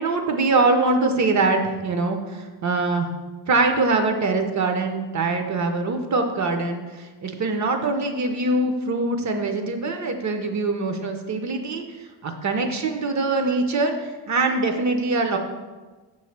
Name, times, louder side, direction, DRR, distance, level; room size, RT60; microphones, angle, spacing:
voice 1, 0.0-3.1 3.5-15.4, right 3 dB, 40° right, 5 dB, 0.5 m, -23 dB
6.9 x 3.1 x 5.8 m, 1.3 s
wide cardioid pair, 180°, 46 cm